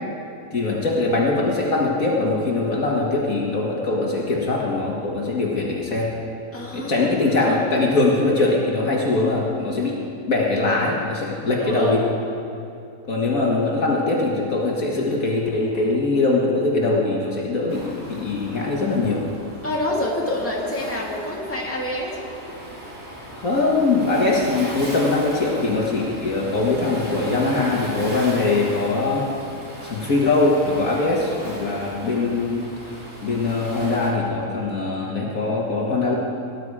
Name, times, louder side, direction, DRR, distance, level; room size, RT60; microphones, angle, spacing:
voice 1, 0.5-6.1 6.7-10.0 10.3-12.0 13.1-19.2 23.3-29.3 29.9-32.7 33.2-36.2, left 3 dB, 55° left, -3 dB, 2.1 m, -22 dB
voice 2, 6.5-7.1 7.8-7.9 11.6-12.1 19.6-22.2, left 1 dB, 10° left, -4 dB, 2.3 m, -27 dB
Waves surf, 17.7-34.1, equal, 45° right, 3.2 m, -36 dB
18.5 x 10.5 x 4.9 m, 2.8 s
omnidirectional pair, 1.8 m